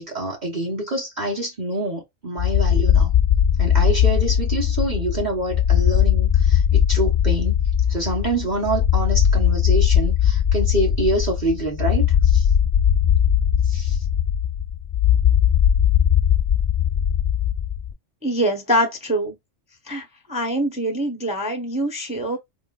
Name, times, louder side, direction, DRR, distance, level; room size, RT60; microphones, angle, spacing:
voice 1, 0.0-3.1 3.6-7.5 7.9-12.5 13.6-14.0, right 1 dB, 40° right, 1.1 m, -26 dB
sound 1, 2.4-17.9, left 9 dB, 45° left, 0.4 m, -19 dB
voice 2, 18.2-19.3 19.9-22.4, right 1 dB, 5° right, 0.6 m, -24 dB
3.8 x 2.5 x 2.3 m
omnidirectional pair, 1.2 m